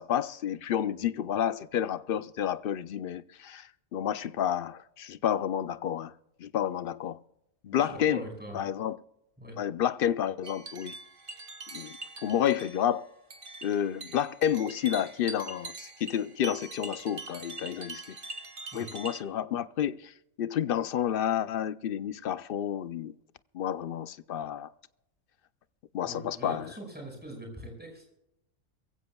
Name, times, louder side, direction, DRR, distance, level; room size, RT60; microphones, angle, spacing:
voice 1, 0.0-6.1 6.4-7.2 7.6-8.3 8.5-9.0 9.6-11.0 11.7-13.1 13.6-18.2 18.7-23.1 23.5-24.7 25.9-26.7, left 10 dB, 60° left, 0.6 m, -30 dB
voice 2, 7.7-8.6 9.4-9.6 18.7-18.9 26.0-28.1, right 1 dB, 5° right, 5.5 m, -42 dB
sound 1, 10.4-19.2, right 3 dB, 45° right, 1.2 m, -43 dB
23.0 x 16.0 x 2.3 m
omnidirectional pair, 1.3 m